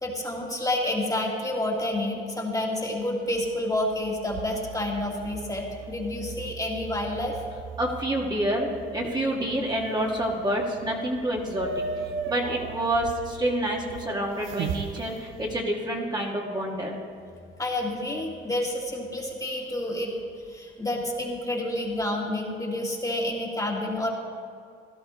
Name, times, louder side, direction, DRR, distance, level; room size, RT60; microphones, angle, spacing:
voice 1, 0.0-7.4 17.6-20.1 20.5-24.1, left 1 dB, 15° left, -2 dB, 2.0 m, -29 dB
sound 1, 4.3-15.6, right 5 dB, 80° right, 0.7 m, -38 dB
voice 2, 7.8-11.8 12.3-17.0, right 1 dB, 20° right, -2 dB, 1.8 m, -28 dB
16.5 x 12.0 x 3.1 m, 2.3 s
cardioid pair, 90°, 20 cm